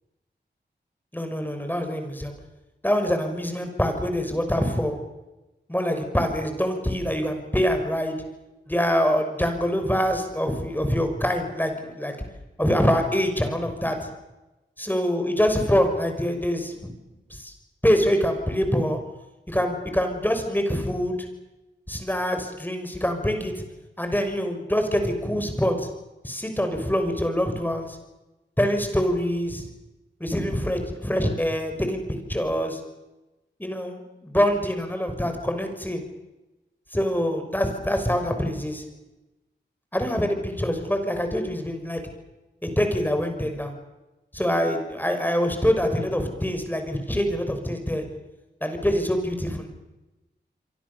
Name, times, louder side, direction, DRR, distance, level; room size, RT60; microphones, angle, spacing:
voice 1, 1.1-2.3 2.8-5.0 5.7-8.2 8.7-12.2 12.6-14.1 14.8-16.9 17.3-17.5 17.8-19.0 19.5-21.2 21.9-23.6 24.0-25.9 26.2-27.9 28.6-29.7 30.2-32.0 32.3-32.8 33.6-36.0 36.9-38.8 39.9-42.0 42.6-43.7 44.3-48.0 48.6-49.7, equal, 10° left, 6 dB, 6.1 m, -25 dB
28.0 x 24.0 x 7.1 m, 1.0 s
cardioid pair, 45°, 19 cm